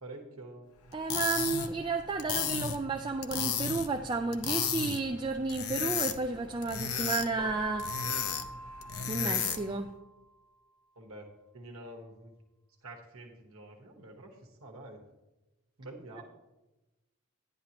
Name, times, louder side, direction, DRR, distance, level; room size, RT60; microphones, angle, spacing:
voice 1, 0.0-1.0 11.0-11.3 11.5-12.3 12.8-15.0 15.8-16.2, right 2 dB, 70° right, 2 dB, 1.2 m, -47 dB
sound 1, 0.9-9.8, left 7 dB, 80° left, 0.7 m, -34 dB
voice 2, 0.9-7.9 9.1-9.9, right 4 dB, 20° right, 5 dB, 0.3 m, -32 dB
Keyboard (musical), 7.4-10.1, right 1 dB, 5° right, 3.3 m, -43 dB
10.5 x 10.5 x 2.9 m, 1.0 s
head